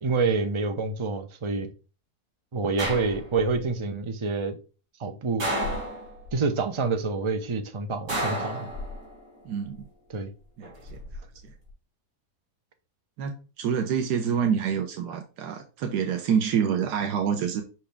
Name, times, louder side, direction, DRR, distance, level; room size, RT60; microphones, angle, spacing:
voice 1, 0.0-1.7 2.5-4.6 5.0-5.5 6.3-8.7 10.1-10.3, right 4 dB, 40° right, 0.4 m, -27 dB
sound 1, 2.8-3.6 5.4-6.3 8.1-9.2 10.6-11.2, right 1 dB, 55° right, 3.3 m, -31 dB
voice 2, 9.4-9.9 10.6-11.0 11.4-11.5 13.2-17.6, right 7 dB, 90° right, 1.3 m, -27 dB
5.9 x 4.8 x 3.4 m
omnidirectional pair, 1.7 m